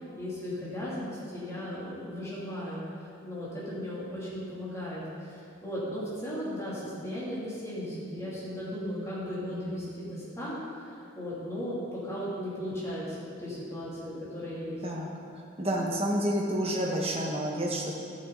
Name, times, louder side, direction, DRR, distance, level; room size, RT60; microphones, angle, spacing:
voice 1, 0.1-14.8, equal, 15° left, -9 dB, 2.9 m, -36 dB
voice 2, 15.4-18.0, equal, 30° right, -2 dB, 1.4 m, -29 dB
11.5 x 8.9 x 4.0 m, 2.5 s
head